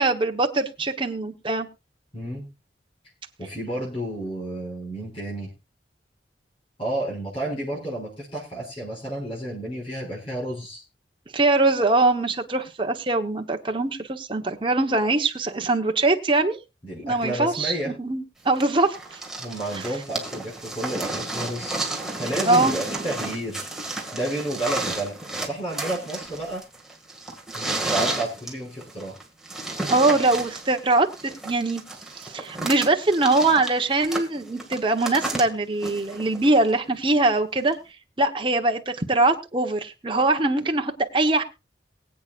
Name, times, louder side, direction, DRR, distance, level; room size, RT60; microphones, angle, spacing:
voice 1, 0.0-1.7 11.3-16.6 17.0-19.2 19.7-19.8 22.4-22.7 29.9-31.1 31.4-31.8 32.2-37.8 38.2-41.4, right 2 dB, 30° right, 4 dB, 1.1 m, -22 dB
voice 2, 2.1-2.5 3.4-5.5 6.8-10.8 16.8-17.9 19.4-21.8 22.1-23.7 24.1-26.6 27.5-29.2, right 1 dB, 30° left, -5 dB, 6.0 m, -31 dB
sound 1, 18.6-36.7 37.7-37.8, right 2 dB, 5° right, 2.1 m, -32 dB
23.0 x 8.5 x 2.5 m, 0.26 s
head